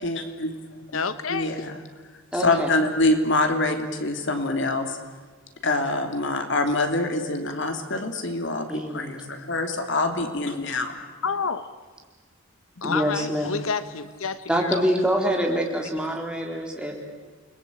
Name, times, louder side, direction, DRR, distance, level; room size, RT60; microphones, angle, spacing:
voice 1, 0.0-0.8 1.3-1.6 2.4-4.9 5.6-8.7 8.9-10.9, left 2 dB, 60° left, 5 dB, 3.1 m, -25 dB
voice 2, 0.9-1.7 11.2-11.6 12.8-14.8, left 5 dB, 90° left, 13 dB, 1.1 m, -29 dB
voice 3, 2.3-2.7 8.7-9.3 12.8-13.6 14.5-16.9, equal, 5° right, 1 dB, 4.0 m, -25 dB
29.5 x 21.5 x 8.7 m, 1.4 s
head